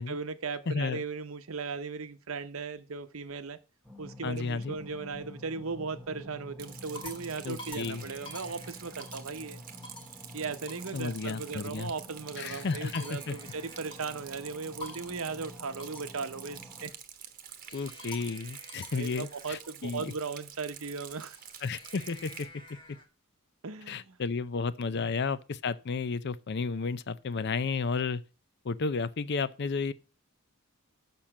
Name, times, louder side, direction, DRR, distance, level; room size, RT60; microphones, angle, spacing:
voice 1, 0.1-3.6 4.0-9.6 10.3-16.9 18.7-21.4 23.6-24.2 24.9-25.1, right 4 dB, 70° right, 0.9 m, -37 dB
voice 2, 0.7-1.0 4.2-4.7 7.4-8.0 10.9-11.9 12.4-13.4 17.7-20.1 21.6-22.5 23.9-28.2 28.6-29.9, left 4 dB, 50° left, 0.5 m, -32 dB
sound 1, 3.8-16.9, left 1 dB, 5° right, 1.1 m, -49 dB
sound 2, 4.8-5.2 5.7-6.1 6.6-9.4 9.8-10.2 10.7-11.0 12.2-14.3 14.8-15.2 15.8-16.2 17.6-19.7 21.0-23.1, left 2 dB, 20° left, 1.6 m, -49 dB
Rain, 6.6-22.5, right 9 dB, 40° right, 1.0 m, -48 dB
6.9 x 5.8 x 7.2 m
head